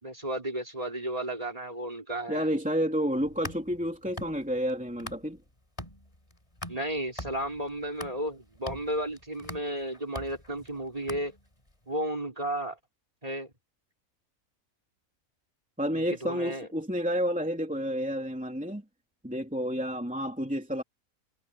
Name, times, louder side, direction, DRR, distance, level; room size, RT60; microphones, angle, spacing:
voice 1, 0.0-2.5 6.7-11.3 11.9-12.8 13.2-13.5 15.9-16.7, right 1 dB, 25° right, 5.0 m, -33 dB
voice 2, 2.3-5.4 15.8-18.8 19.2-20.8, equal, 5° right, 3.1 m, -30 dB
sound 1, 3.1-5.5 5.8-11.7, left 1 dB, 25° left, 4.3 m, -43 dB
omnidirectional pair, 1.5 m